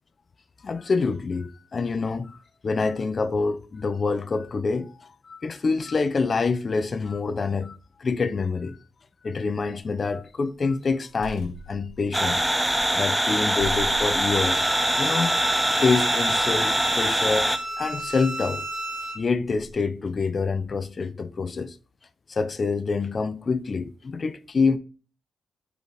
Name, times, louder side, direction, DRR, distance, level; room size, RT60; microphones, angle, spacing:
voice 1, 0.6-8.8 9.2-12.4 12.9-14.6 15.0-15.3 15.8-17.5 17.8-18.7 19.1-21.8 22.3-24.8, left 4 dB, 40° left, 0.5 m, -26 dB
sound 1, 9.8-10.4 10.8-13.0 13.3-13.4 13.6-15.1, right 1 dB, 85° left, 1.5 m, -40 dB
sound 2, 12.1-17.6, right 1 dB, 5° right, 0.7 m, -23 dB
Bowed string instrument, 14.3-19.2, right 1 dB, 45° right, 1.5 m, -32 dB
5.1 x 4.7 x 4.9 m
cardioid pair, 90°, 0 cm